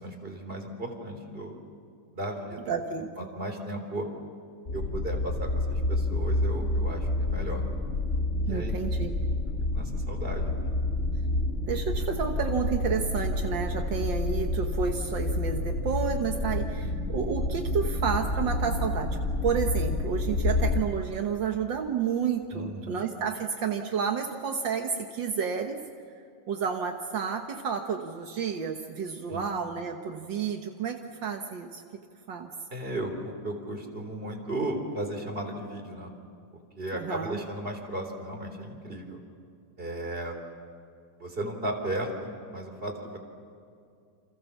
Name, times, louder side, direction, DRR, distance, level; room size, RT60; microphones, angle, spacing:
voice 1, 0.0-1.6 2.1-2.7 3.2-4.1 4.7-7.6 8.4-8.9 9.7-10.5 16.8-16.9 22.5-23.0 29.3-29.5 32.7-36.1 36.8-39.2 39.8-40.4 41.2-43.2, right 1 dB, 15° right, 3 dB, 3.7 m, -35 dB
voice 2, 2.7-3.3 8.5-9.1 11.7-25.8 26.5-31.8 32.3-32.5 36.9-37.4, right 6 dB, 60° right, 4 dB, 1.2 m, -30 dB
sound 1, 4.7-20.8, left 2 dB, 30° left, 1.4 m, -29 dB
29.5 x 27.5 x 7.2 m, 2.3 s
omnidirectional pair, 3.8 m